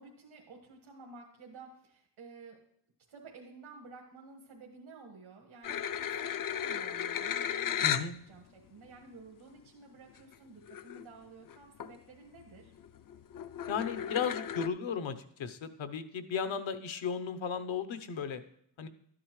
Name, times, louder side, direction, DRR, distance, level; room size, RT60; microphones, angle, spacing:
voice 1, 0.0-2.6 3.1-12.7, right 4 dB, 85° right, -1 dB, 1.8 m, -52 dB
sound 1, 5.6-8.1 8.8-8.9 10.3-10.4 10.7-11.1 11.4-12.0 12.4-14.7, left 9 dB, 45° left, 0.4 m, -35 dB
voice 2, 7.8-8.1 13.7-18.4 18.8-18.9, left 6 dB, 75° left, 10 dB, 0.9 m, -35 dB
12.5 x 10.0 x 3.2 m, 0.69 s
cardioid pair, 70°, 47 cm